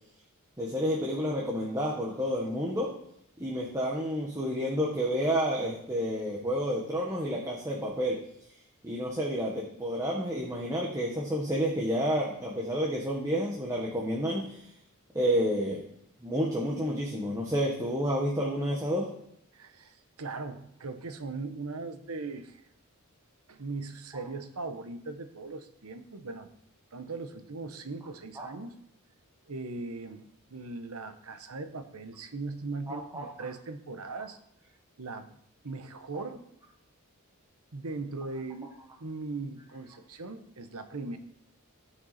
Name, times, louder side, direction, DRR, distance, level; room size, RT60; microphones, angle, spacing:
voice 1, 0.6-2.9 3.4-8.2 8.8-14.6 15.1-15.8 16.2-19.1 28.4-28.5 32.9-33.3 36.1-36.2, equal, 15° right, -4 dB, 1.5 m, -30 dB
voice 2, 19.5-22.6 23.5-26.5 26.9-28.7 29.5-34.4 35.0-35.3 35.6-36.4 37.7-38.7 39.0-41.2, right 3 dB, 80° right, 9 dB, 1.0 m, -39 dB
15.5 x 6.0 x 4.3 m, 0.74 s
head